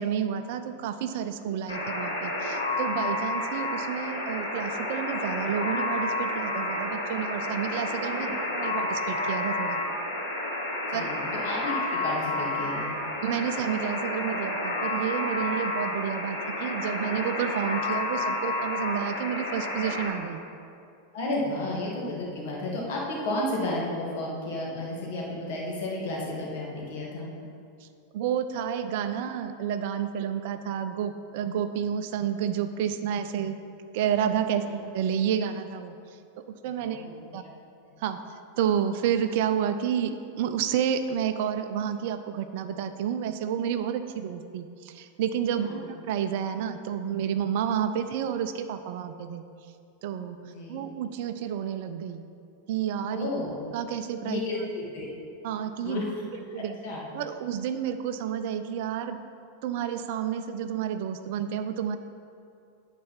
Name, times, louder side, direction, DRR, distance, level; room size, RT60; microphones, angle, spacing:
voice 1, 0.0-9.8 10.9-11.1 13.2-20.4 27.8-27.9 28.1-33.6 33.9-35.9 36.4-37.4 38.0-38.2 38.6-49.4 50.0-50.4 50.7-52.2 52.7-53.3 53.7-54.4 55.4-56.0 56.5-56.8 57.1-59.2 59.6-62.0, right 8 dB, 50° right, 9 dB, 0.5 m, -30 dB
Alarm, 1.7-20.1, left 2 dB, 75° left, 2.4 m, -30 dB
voice 2, 8.1-8.7 10.9-13.0 21.1-27.3 36.8-37.5 37.9-38.0 45.6-45.9 50.4-50.8 53.1-53.5 54.2-55.1 55.8-56.0 56.5-57.0, left 2 dB, 50° left, -3 dB, 2.1 m, -33 dB
9.4 x 4.1 x 7.3 m, 2.4 s
figure-of-eight pair, 90°, 0 cm